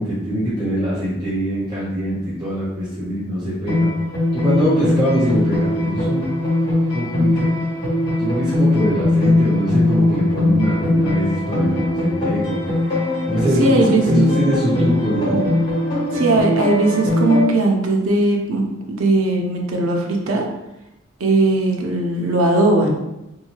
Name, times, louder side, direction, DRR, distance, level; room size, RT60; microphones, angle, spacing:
voice 1, 0.0-3.9 4.3-6.3 6.9-7.5 8.2-12.6 13.3-15.4, equal, 20° right, -9 dB, 0.6 m, -22 dB
sound 1, 3.7-17.4, left 2 dB, 45° left, 1.5 m, -20 dB
voice 2, 13.6-14.3 16.1-18.6 18.9-20.4 21.2-23.0, right 2 dB, 85° right, 1 dB, 0.5 m, -18 dB
2.7 x 2.2 x 2.9 m, 0.89 s
head